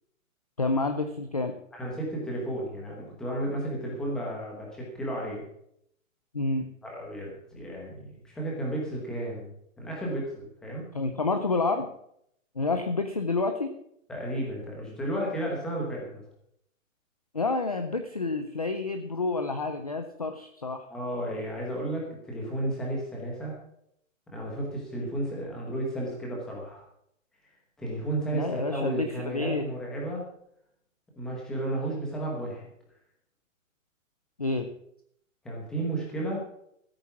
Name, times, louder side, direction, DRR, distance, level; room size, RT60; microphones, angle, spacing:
voice 1, 0.6-1.6 6.3-6.7 10.9-11.9 12.6-13.7 17.3-20.9 28.3-29.6 34.4-34.7, left 3 dB, 30° left, 7 dB, 0.5 m, -29 dB
voice 2, 1.7-5.4 6.8-9.5 9.8-10.8 14.1-16.2 20.9-23.5 24.3-26.8 27.8-30.3 31.2-32.7 35.4-36.4, right 1 dB, ahead, -3 dB, 1.0 m, -33 dB
14.5 x 8.8 x 5.9 m, 0.72 s
hypercardioid pair, 180°, 40 cm